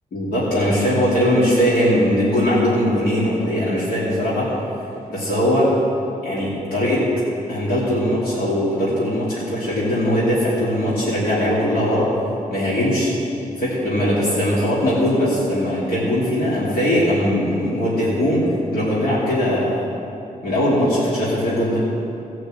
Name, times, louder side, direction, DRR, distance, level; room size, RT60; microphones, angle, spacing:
voice 1, 0.1-4.5 5.1-5.7 6.2-7.0 7.5-12.1 12.5-13.1 13.6-18.4 18.7-19.8 20.4-21.8, equal, 90° left, -8 dB, 2.8 m, -20 dB
16.0 x 6.2 x 7.6 m, 2.8 s
wide cardioid pair, 120°, 15 cm